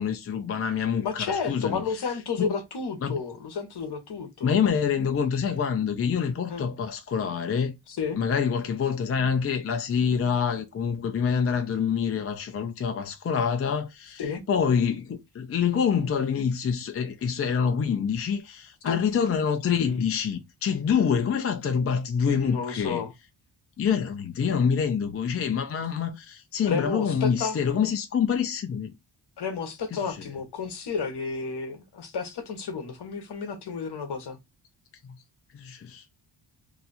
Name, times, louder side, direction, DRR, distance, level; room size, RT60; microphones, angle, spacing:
voice 1, 0.0-1.8 2.4-2.5 3.0-3.2 4.4-7.7 8.1-14.2 14.5-23.1 23.8-28.9 29.9-30.0 35.5-36.0, left 7 dB, 30° left, 0.4 m, -26 dB
voice 2, 1.0-4.5 6.5-6.7 7.9-8.2 14.2-14.4 18.9-19.0 22.4-23.1 26.6-27.6 29.4-34.4, left 5 dB, 55° left, 1.0 m, -31 dB
2.8 x 2.3 x 3.9 m
wide cardioid pair, 150°, 47 cm